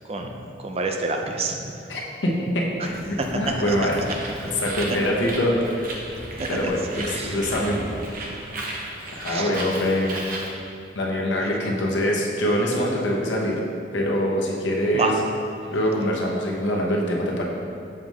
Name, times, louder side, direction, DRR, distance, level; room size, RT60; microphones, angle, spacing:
voice 1, 0.1-1.7 2.8-2.9 3.2-3.3 3.7-3.9 6.4-6.7 7.1-7.4 9.3-9.5 14.9-15.1, right 3 dB, 35° right, 3 dB, 0.5 m, -28 dB
voice 2, 1.9-3.0 3.3-3.9 4.5-6.0 6.5-7.9 9.1-10.2 10.9-13.6 13.9-15.1 15.7-17.4, equal, 90° left, -2 dB, 1.0 m, -24 dB
sound 1, 2.8-8.5, equal, 45° left, 1.4 m, -40 dB
Bird, 3.9-10.5, right 2 dB, 50° right, 0.8 m, -35 dB
6.8 x 5.3 x 3.1 m, 2.5 s
head